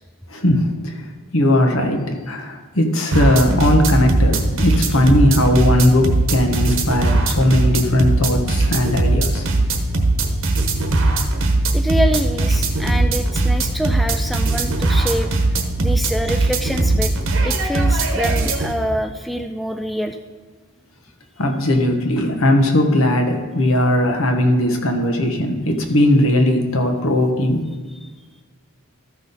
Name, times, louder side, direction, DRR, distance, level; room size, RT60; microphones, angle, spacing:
voice 1, 0.3-0.9 1.3-9.5 21.4-27.6, left 1 dB, 70° left, 4 dB, 1.3 m, -18 dB
sound 1, 3.1-18.7, right 2 dB, 65° right, 1.1 m, -19 dB
voice 2, 11.7-15.3 15.8-17.1 17.4-20.2 28.0-28.1, equal, ahead, 5 dB, 0.3 m, -25 dB
13.5 x 6.0 x 4.1 m, 1.4 s
head